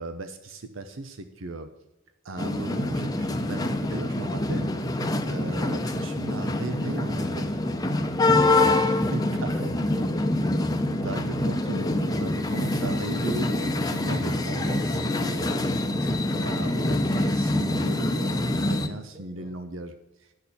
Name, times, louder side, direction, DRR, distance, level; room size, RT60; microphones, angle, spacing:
voice 1, 0.0-1.7 2.2-4.7 5.3-7.5 8.2-8.8 9.1-9.7 10.9-20.3, right 2 dB, 90° right, 8 dB, 0.8 m, -37 dB
sound 1, 2.4-18.9, left 2 dB, 20° left, 0.7 m, -25 dB
voice 2, 9.3-10.8 19.1-19.6, equal, 35° right, 2 dB, 2.7 m, -45 dB
9.9 x 6.5 x 6.8 m, 0.99 s
head